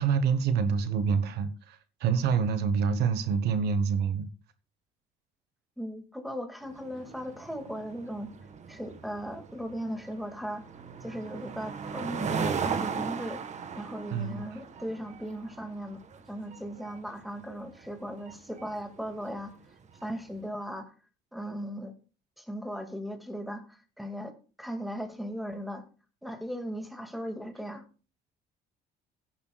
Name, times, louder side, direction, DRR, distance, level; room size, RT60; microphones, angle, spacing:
voice 1, 0.0-4.3 14.1-14.4, right 6 dB, 75° right, 1.2 m, -27 dB
voice 2, 5.8-8.3 8.7-10.7 11.0-13.4 13.7-16.0 16.3-19.6 20.0-20.9 21.3-21.9 22.4-25.8 26.2-27.8, equal, ahead, 2.1 m, -37 dB
sound 1, 6.7-20.2, right 6 dB, 45° right, 1.4 m, -38 dB
16.0 x 10.5 x 2.4 m
cardioid pair, 110°, 17 cm